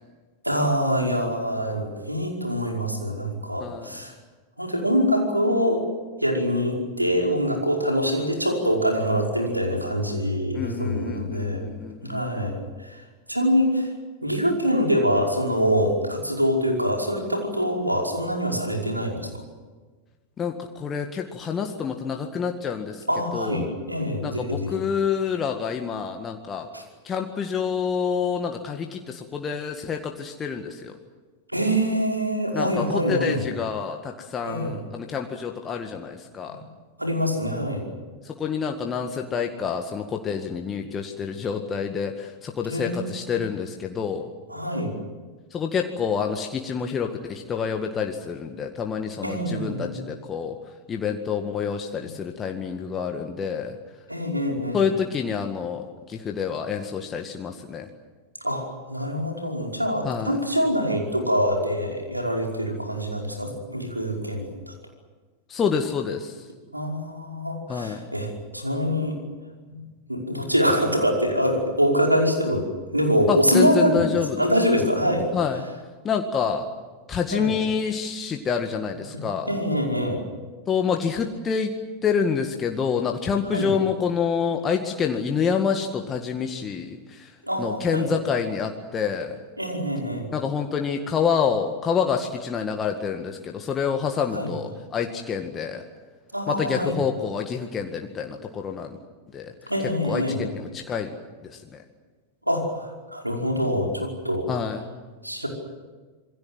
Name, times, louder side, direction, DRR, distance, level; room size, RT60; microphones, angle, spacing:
voice 1, 0.4-4.1 4.6-5.8 6.2-11.6 12.0-12.6 12.8-12.9 13.3-13.9 14.2-19.2 23.1-24.7 26.7-26.8 31.5-33.4 34.4-34.7 36.5-36.6 37.0-37.8 42.6-43.4 44.5-44.9 49.2-50.0 54.1-54.8 58.4-64.7 66.7-69.1 69.7-69.8 70.1-72.6 72.9-74.0 74.4-75.3 77.3-77.5 79.5-80.2 83.5-83.7 87.4-88.1 89.6-90.3 94.3-94.5 96.3-96.9 99.7-100.4 102.5-104.5 105.2-105.5, equal, 85° right, 1 dB, 5.3 m, -24 dB
voice 2, 3.6-3.9 10.5-12.5 20.4-23.0 23.3-23.7 24.2-26.7 27.0-30.9 32.5-36.6 38.2-44.3 45.5-50.6 50.9-53.8 54.7-57.9 60.0-60.4 65.5-66.4 67.7-68.1 73.3-74.5 75.3-75.7 76.0-76.7 77.1-79.5 80.7-81.7 82.0-87.3 87.6-89.4 90.3-95.8 96.5-99.0 99.3-99.5 100.0-101.1 101.4-101.8 104.5-104.8, left 6 dB, 25° left, 4 dB, 1.9 m, -27 dB
27.0 x 23.0 x 7.8 m, 1.4 s
figure-of-eight pair, 90°, 0 cm